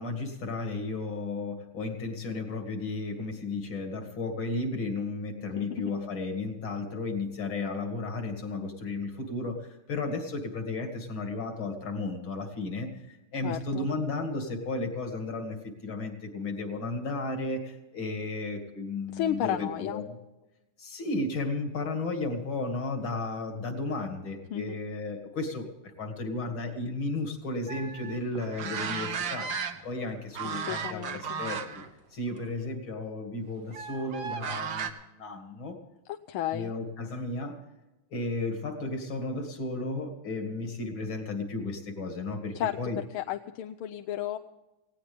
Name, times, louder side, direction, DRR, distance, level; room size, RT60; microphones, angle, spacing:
voice 1, 0.0-20.2 20.8-29.5 29.8-31.6 32.1-35.8 36.5-37.6 38.1-43.0, left 2 dB, 70° left, 4 dB, 3.0 m, -34 dB
voice 2, 13.4-13.9 19.1-20.0 24.5-24.8 30.5-31.4 36.1-36.7 42.5-44.4, left 11 dB, 90° left, 6 dB, 1.6 m, -33 dB
sound 1, 27.7-30.0 30.3-31.9 32.3-32.5 33.7-34.9, right 6 dB, 55° right, 1.6 m, -35 dB
19.0 x 17.0 x 3.5 m, 1.0 s
omnidirectional pair, 2.3 m